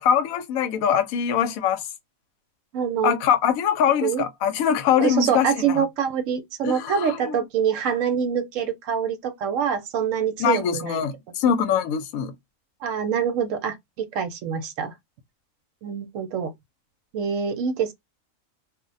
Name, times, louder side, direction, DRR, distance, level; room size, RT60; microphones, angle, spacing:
voice 1, 0.0-1.8 3.0-5.8 6.6-7.4 10.4-12.3, left 8 dB, 85° left, 1.0 m, -23 dB
voice 2, 2.7-3.1 4.0-4.2 5.0-11.0 12.8-14.9 15.8-16.5 17.1-17.9, right 7 dB, 75° right, 0.9 m, -25 dB
2.4 x 2.1 x 3.9 m
omnidirectional pair, 1.4 m